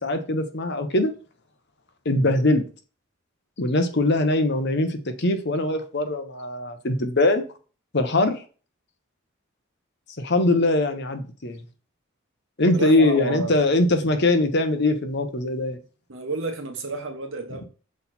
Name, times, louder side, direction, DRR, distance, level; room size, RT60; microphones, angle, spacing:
voice 1, 0.0-1.1 2.0-2.6 3.6-7.4 7.9-8.4 10.2-11.6 12.6-15.8, left 2 dB, 55° left, 1.0 m, -22 dB
voice 2, 12.7-13.6 16.1-17.6, right 3 dB, 60° right, 1.2 m, -31 dB
6.4 x 4.1 x 4.3 m
head